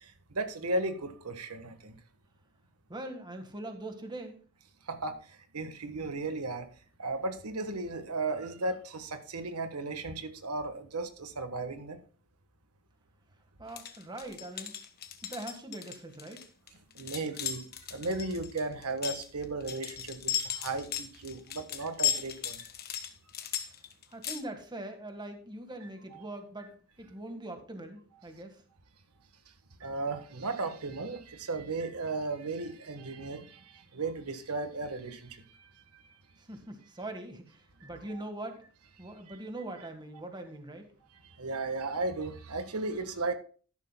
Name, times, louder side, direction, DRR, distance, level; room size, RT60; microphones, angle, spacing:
voice 1, 0.0-2.0 4.9-6.7 7.0-12.0 16.9-17.6 17.9-22.7 25.8-26.2 29.8-36.0 37.8-37.9 39.3-39.4 41.4-43.3, right 3 dB, 85° right, 8 dB, 1.3 m, -35 dB
voice 2, 2.9-4.4 13.6-14.7 15.2-16.5 24.1-28.6 36.5-38.6 39.0-40.9, right 1 dB, 20° right, 6 dB, 1.6 m, -42 dB
sound 1, 13.7-24.4, left 10 dB, 45° left, 1.3 m, -36 dB
13.0 x 11.5 x 2.2 m, 0.40 s
head